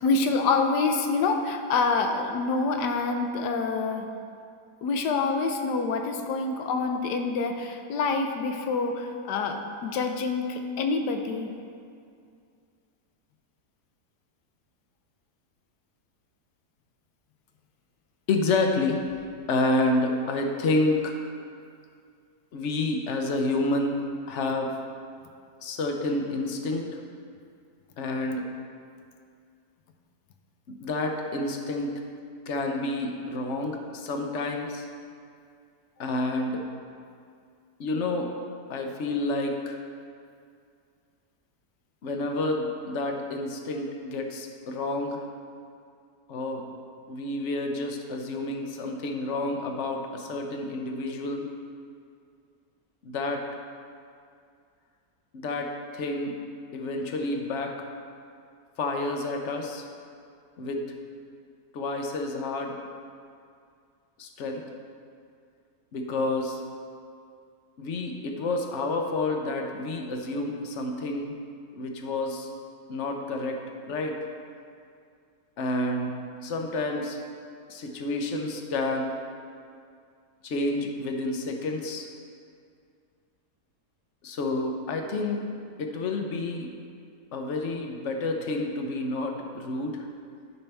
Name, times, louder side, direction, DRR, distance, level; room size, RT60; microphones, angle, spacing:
voice 1, 0.0-4.1 4.8-11.5, left 4 dB, 85° left, 5 dB, 1.3 m, -26 dB
voice 2, 18.3-19.0 19.5-21.1 22.5-24.7 25.6-27.0 28.0-28.5 30.8-32.0 32.5-34.9 36.0-36.6 37.8-38.3 38.7-39.8 42.0-45.2 46.3-46.6 47.1-51.5 53.0-53.4 55.3-56.3 56.7-57.7 58.8-59.8 60.6-60.8 61.7-62.8 64.2-64.6 65.9-66.6 67.8-71.3 71.8-72.5 72.9-73.6 73.8-74.2 75.6-77.2 77.7-79.1 80.4-82.1 84.2-85.4 85.8-86.7 87.3-90.0, left 2 dB, 55° left, 3 dB, 0.9 m, -29 dB
12.0 x 5.5 x 3.4 m, 2.3 s
omnidirectional pair, 1.8 m